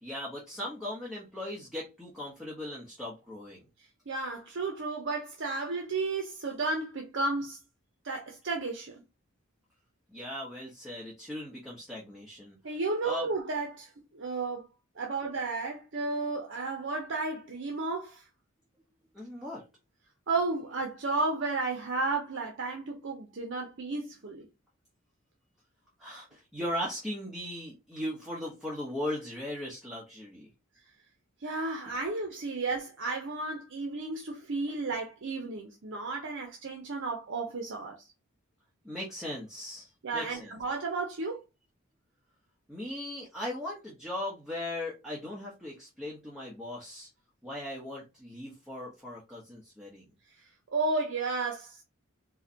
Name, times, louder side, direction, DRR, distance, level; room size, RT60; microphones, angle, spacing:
voice 1, 0.0-3.6 10.1-12.6 13.0-13.3 19.1-19.6 26.0-30.5 31.9-32.0 38.8-40.6 42.7-47.1 47.4-50.1, left 1 dB, ahead, 0.9 m, -38 dB
voice 2, 4.1-7.6 8.0-9.0 12.6-14.7 15.0-18.2 20.3-24.5 31.4-38.1 40.0-41.4 50.7-51.8, right 3 dB, 60° right, 0.7 m, -33 dB
4.6 x 2.2 x 2.8 m
head